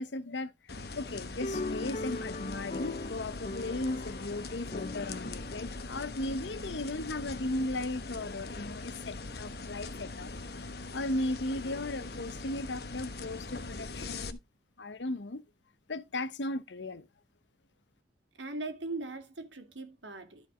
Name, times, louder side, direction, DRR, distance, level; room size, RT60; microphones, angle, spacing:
voice 1, 0.0-10.3 10.9-14.4 14.8-15.4 15.9-17.1, left 2 dB, 80° left, 0.9 m, -36 dB
sound 1, 0.7-14.3, left 3 dB, 60° left, 1.1 m, -41 dB
sound 2, 1.4-7.0, left 2 dB, 40° left, 0.5 m, -40 dB
voice 2, 18.4-20.5, right 2 dB, 90° right, 2.6 m, -39 dB
12.5 x 4.7 x 4.9 m
head